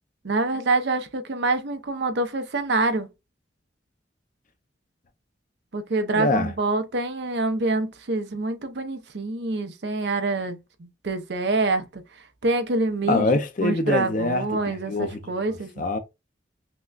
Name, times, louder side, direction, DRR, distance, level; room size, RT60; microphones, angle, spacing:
voice 1, 0.2-3.1 5.7-12.0 12.4-13.2 13.6-15.8, right 2 dB, 65° right, 0.7 m, -26 dB
voice 2, 6.1-6.5 13.1-15.3 15.8-16.0, left 2 dB, 45° left, 0.5 m, -24 dB
5.9 x 2.2 x 2.4 m
head